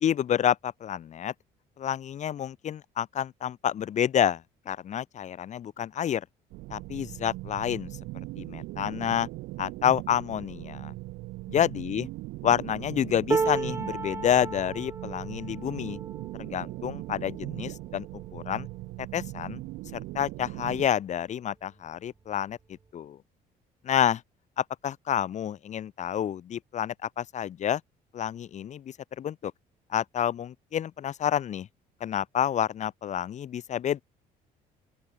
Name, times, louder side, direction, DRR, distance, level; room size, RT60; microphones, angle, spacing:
voice 1, 0.0-1.3 1.8-6.2 6.7-7.9 8.4-9.3 9.6-10.9 11.5-12.1 12.4-16.0 16.4-18.1 18.3-18.7 19.1-19.6 19.9-22.6 22.9-23.2 23.8-24.2 24.6-27.8 28.1-29.5 29.9-31.7 32.0-34.0, left 9 dB, 45° left, 0.7 m, -29 dB
sound 1, 6.5-20.9, right 20 dB, 80° right, 0.5 m, -39 dB
sound 2, 13.3-19.5 20.0-20.2 20.5-21.3 22.3-22.4, right 4 dB, 15° right, 0.3 m, -35 dB
open air
cardioid pair, 110°, 17 cm